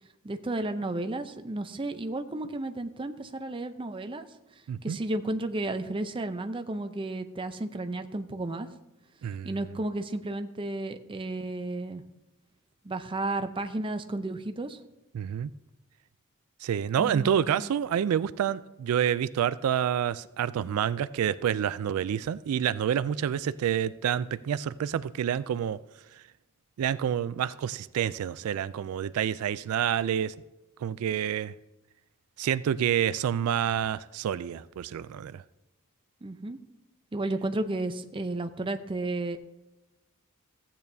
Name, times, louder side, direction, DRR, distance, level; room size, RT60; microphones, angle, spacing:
voice 1, 0.2-4.3 4.8-8.7 9.4-12.0 12.8-14.8 17.0-17.7 36.2-36.6 37.1-39.4, right 2 dB, 25° right, 0.6 m, -33 dB
voice 2, 4.7-5.0 9.2-9.5 15.1-15.5 16.6-25.8 26.8-30.3 30.8-31.5 32.4-35.4, right 9 dB, 80° right, 0.3 m, -28 dB
15.0 x 8.7 x 2.7 m
head